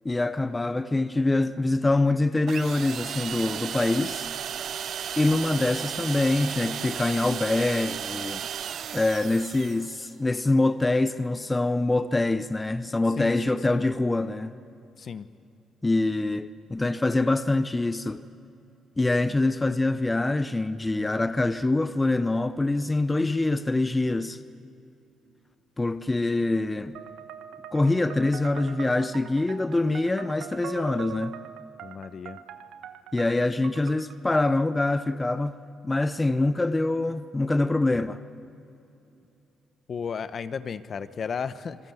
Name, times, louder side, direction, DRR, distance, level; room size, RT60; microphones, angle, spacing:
voice 1, 0.0-4.3 5.2-8.4 8.9-14.6 15.8-18.2 19.0-24.4 25.8-27.0 27.7-31.4 33.1-35.5 35.8-38.2, left 2 dB, 15° left, 0.8 m, -25 dB
sound 1, 2.5-10.1, right 9 dB, 65° right, 0.5 m, -34 dB
voice 2, 13.2-13.8 15.0-15.3 31.8-32.4 39.9-41.8, left 6 dB, 50° left, 1.0 m, -34 dB
sound 2, 26.9-34.2, right 9 dB, 80° right, 1.2 m, -42 dB
27.0 x 22.0 x 7.9 m
cardioid pair, 90°, 0 cm